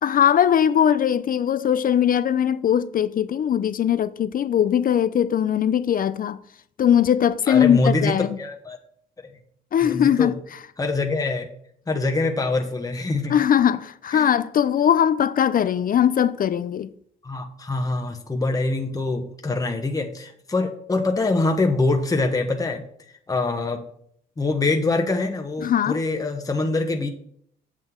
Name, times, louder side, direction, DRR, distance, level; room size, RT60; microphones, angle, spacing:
voice 1, 0.0-6.4 6.8-8.3 9.7-10.4 13.3-16.9 25.6-26.0, left 9 dB, 45° left, 0.4 m, -20 dB
voice 2, 7.5-8.8 9.8-10.3 10.8-11.5 11.9-13.4 14.1-14.3 17.2-22.8 23.3-23.8 24.4-27.1, left 3 dB, 20° left, 1.1 m, -24 dB
7.9 x 7.4 x 3.7 m
cardioid pair, 90°, 20 cm